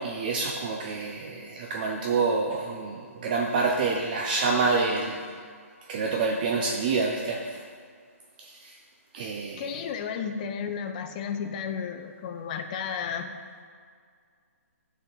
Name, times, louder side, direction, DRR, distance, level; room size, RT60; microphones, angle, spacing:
voice 1, 0.0-5.2 5.9-7.6 8.4-8.7 9.1-9.8, right 4 dB, 35° right, 1 dB, 0.6 m, -27 dB
voice 2, 9.6-13.4, left 7 dB, 30° left, 6 dB, 0.6 m, -33 dB
9.6 x 4.3 x 5.4 m, 2.1 s
hypercardioid pair, 155°, 8 cm